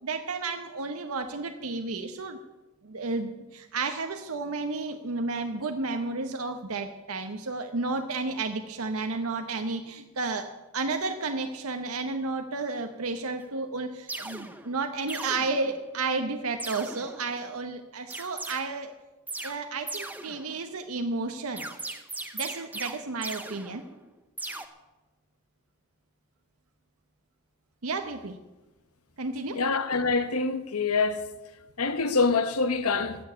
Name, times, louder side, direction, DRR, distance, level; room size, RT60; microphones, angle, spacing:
voice 1, 0.0-2.4 2.8-18.9 19.4-21.7 22.3-23.8 27.8-28.4 29.2-29.6, right 3 dB, 80° right, 0.9 m, -32 dB
sound 1, 13.4-13.5 14.1-14.7 15.1-16.0 16.6-17.4 18.1-18.6 19.3-19.6 19.9-20.7 21.6-24.1 24.4-24.7, right 2 dB, 10° right, 0.8 m, -38 dB
voice 2, 29.5-31.2 31.8-33.3, left 4 dB, 85° left, 1.0 m, -25 dB
15.0 x 7.1 x 9.3 m
head